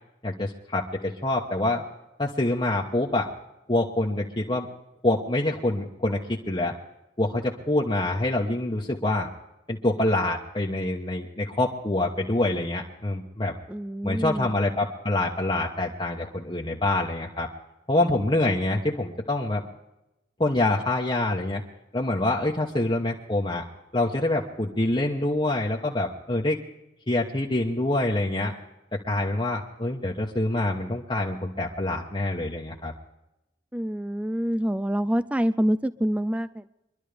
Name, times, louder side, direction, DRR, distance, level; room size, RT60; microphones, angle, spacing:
voice 1, 0.2-1.8 2.2-3.3 3.7-4.7 5.0-6.7 7.2-9.3 9.7-13.5 14.0-17.5 17.9-19.6 20.4-21.6 21.9-23.6 23.9-26.6 27.1-28.5 29.0-32.9, left 2 dB, 25° left, -3 dB, 1.1 m, -26 dB
voice 2, 13.7-14.6 33.7-36.7, equal, 5° right, 14 dB, 0.4 m, -26 dB
24.5 x 12.0 x 3.4 m, 0.92 s
head